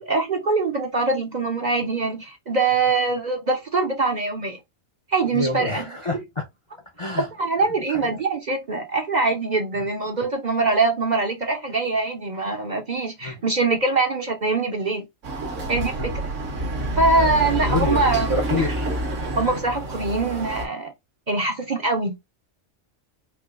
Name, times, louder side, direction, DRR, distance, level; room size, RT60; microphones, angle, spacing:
voice 1, 0.0-4.6 5.1-5.8 7.4-15.1 15.7-16.1 17.0-18.3 19.4-20.9 21.3-22.2, right 3 dB, 45° right, 0.7 m, -23 dB
voice 2, 5.3-6.5 7.0-7.3 7.9-8.1 9.7-9.9 13.2-13.4 16.0-16.1 17.2-18.0 18.3-18.9 19.3-19.4, left 2 dB, 30° left, 0.6 m, -28 dB
Chatter / Car passing by / Motorcycle, 15.2-20.7, right 1 dB, 75° right, 1.5 m, -27 dB
4.5 x 2.5 x 2.4 m
omnidirectional pair, 1.3 m